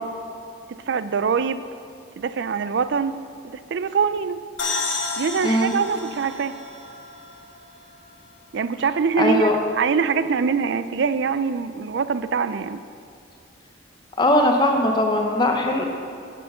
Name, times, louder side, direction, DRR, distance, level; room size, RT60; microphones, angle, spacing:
voice 1, 0.7-1.6 2.2-3.2 3.4-4.4 5.2-6.6 8.5-12.8, right 5 dB, 60° right, 13 dB, 0.4 m, -24 dB
sound 1, 4.6-8.1, left 4 dB, 65° left, 1.3 m, -31 dB
voice 2, 9.2-9.6 14.2-15.8, left 1 dB, 20° left, 2 dB, 0.9 m, -19 dB
9.2 x 8.0 x 5.6 m, 2.5 s
head